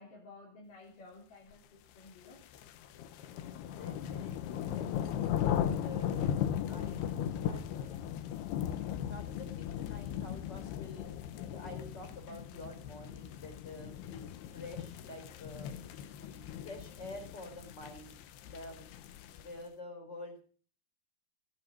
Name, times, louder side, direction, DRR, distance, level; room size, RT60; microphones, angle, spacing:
voice 1, 0.0-2.4, left 3 dB, 55° left, -3 dB, 5.0 m, -54 dB
sound 1, 2.1-19.6, left 10 dB, 90° left, 3.2 m, -37 dB
voice 2, 3.8-5.2 5.6-6.3 6.7-8.0 8.3-11.2 11.5-15.8 16.2-18.2 18.4-18.9 19.3-20.4, left 2 dB, 25° left, 5 dB, 4.2 m, -49 dB
18.5 x 9.2 x 7.4 m, 0.43 s
omnidirectional pair, 4.6 m